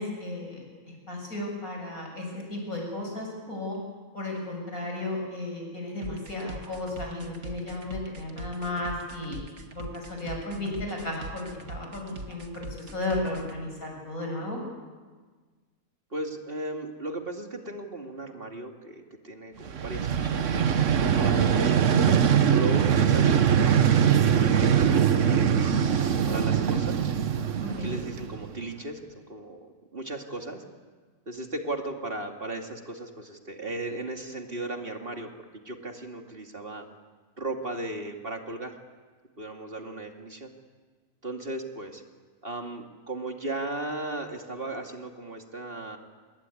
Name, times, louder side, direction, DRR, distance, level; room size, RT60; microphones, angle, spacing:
voice 1, 0.0-3.8 4.1-9.4 9.8-14.6 21.0-21.4 27.6-28.0, left 2 dB, 80° left, 1 dB, 8.0 m, -34 dB
sound 1, 6.0-13.6, right 2 dB, 90° right, 2.5 m, -41 dB
voice 2, 16.1-21.8 22.4-27.0 27.8-30.6 31.3-35.3 35.6-36.8 37.4-38.8 39.4-40.5 41.2-42.0 42.4-46.0, right 2 dB, 40° right, 3 dB, 2.7 m, -36 dB
Vehicle, 19.7-28.6, right 8 dB, 60° right, 1.4 m, -22 dB
26.5 x 21.5 x 9.8 m, 1.4 s
omnidirectional pair, 1.5 m